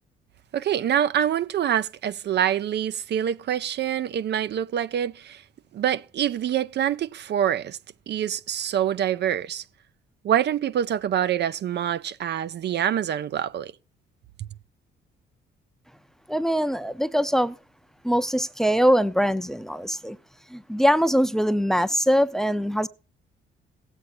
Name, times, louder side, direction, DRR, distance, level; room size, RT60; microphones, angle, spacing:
voice 1, 0.5-5.4 5.7-7.8 8.1-9.6 10.2-13.7, right 10 dB, 60° right, 0.5 m, -25 dB
voice 2, 16.3-17.5 18.0-20.2 20.5-22.9, equal, ahead, 0.6 m, -22 dB
17.0 x 8.1 x 4.3 m
cardioid pair, 90°, 20 cm